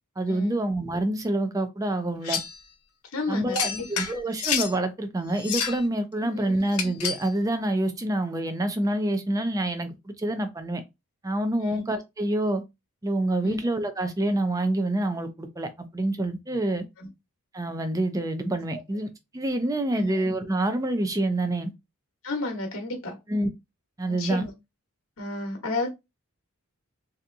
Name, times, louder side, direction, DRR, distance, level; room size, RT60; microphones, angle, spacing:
voice 1, 0.2-2.4 3.3-10.8 11.2-12.6 13.0-16.8 17.5-21.7 23.3-23.5 24.0-24.4, right 1 dB, 15° right, 0.4 m, -27 dB
sound 1, 2.2-2.6 3.5-4.7 5.3-5.9 6.7-7.3, left 7 dB, 90° left, 0.6 m, -29 dB
voice 2, 3.1-4.1 6.2-6.5 11.6-11.8 13.4-13.6 17.0-17.1 18.7-18.8 19.9-20.2 22.2-23.2 24.1-24.5 25.2-25.9, left 2 dB, 65° left, 1.0 m, -32 dB
3.4 x 2.8 x 2.5 m
head